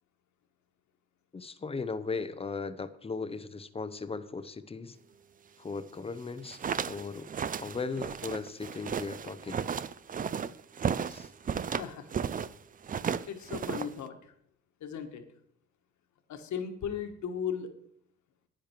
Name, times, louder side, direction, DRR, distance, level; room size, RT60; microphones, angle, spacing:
voice 1, 1.3-5.0 5.6-7.3 7.6-9.6 11.1-11.3, left 4 dB, 20° left, 13 dB, 0.7 m, -37 dB
sound 1, 6.3-12.5 12.8-14.1, right 7 dB, 30° right, 0.4 m, -34 dB
voice 2, 11.6-12.1 13.3-14.3 14.8-15.2 16.3-17.7, left 7 dB, 70° left, 6 dB, 1.4 m, -37 dB
10.0 x 8.8 x 4.5 m, 0.69 s
cardioid pair, 90°, 30 cm